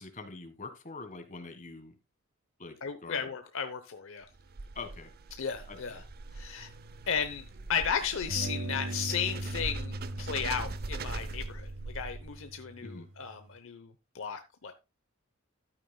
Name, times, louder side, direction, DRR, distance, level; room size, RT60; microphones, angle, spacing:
voice 1, 0.0-2.0 2.6-2.8 3.0-3.3 4.7-5.1 5.7-6.1 12.8-13.1, left 3 dB, 40° left, 1.5 m, -44 dB
voice 2, 2.8-4.3 5.4-6.0 6.3-6.7 7.1-14.7, left 7 dB, 70° left, 0.8 m, -35 dB
sound 1, 4.2-12.6, right 3 dB, 50° right, 0.6 m, -42 dB
sound 2, 6.6-7.8 8.3-13.5, right 1 dB, 85° right, 0.7 m, -40 dB
12.5 x 9.0 x 2.2 m
head